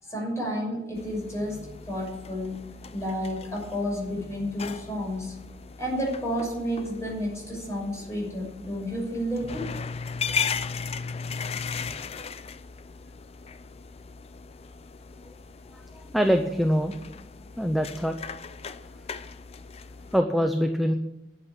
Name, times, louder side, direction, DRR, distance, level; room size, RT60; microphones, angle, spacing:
voice 1, 0.0-5.3 5.8-9.7, equal, 15° left, -3 dB, 6.2 m, -31 dB
sound 1, 1.0-20.2, left 5 dB, 35° left, 0.5 m, -37 dB
voice 2, 15.7-17.0 17.6-18.2 20.1-20.9, equal, ahead, 4 dB, 0.7 m, -24 dB
11.5 x 8.3 x 8.8 m, 0.90 s
head